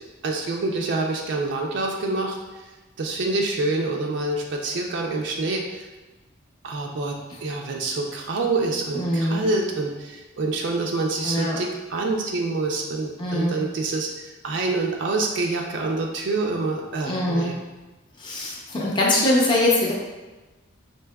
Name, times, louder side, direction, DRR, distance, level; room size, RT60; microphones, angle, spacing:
voice 1, 0.2-2.4 3.0-5.9 6.6-17.5, right 3 dB, 60° right, 1 dB, 0.4 m, -26 dB
voice 2, 8.9-9.5 11.2-11.6 13.2-13.6 17.0-17.5 18.2-19.9, left 1 dB, 25° left, -4 dB, 0.5 m, -22 dB
4.5 x 2.7 x 2.2 m, 1.1 s
head